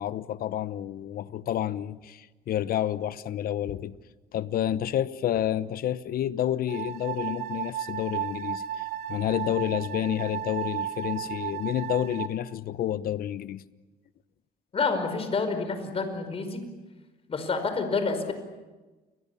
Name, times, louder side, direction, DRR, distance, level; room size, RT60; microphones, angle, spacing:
voice 1, 0.0-4.0 4.3-13.6, left 11 dB, 60° left, 1.0 m, -29 dB
sound 1, 6.7-12.3, right 11 dB, 75° right, 2.2 m, -34 dB
voice 2, 14.7-16.6 17.3-18.3, left 4 dB, 35° left, 5.2 m, -28 dB
30.0 x 22.5 x 7.2 m
cardioid pair, 110°, 17 cm